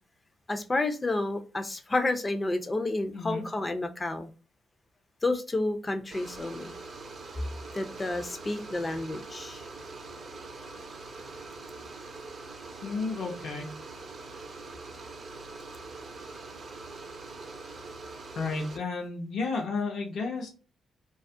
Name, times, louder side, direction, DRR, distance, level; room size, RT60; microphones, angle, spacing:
voice 1, 0.5-4.3 5.2-6.7 7.7-9.7, left 2 dB, 25° left, 0.4 m, -30 dB
voice 2, 3.1-3.4 12.8-13.7 18.4-20.5, left 4 dB, 70° left, 0.7 m, -32 dB
sound 1, 6.1-18.8, right 3 dB, 50° right, 0.5 m, -43 dB
2.3 x 2.1 x 2.5 m
cardioid pair, 80°, 0 cm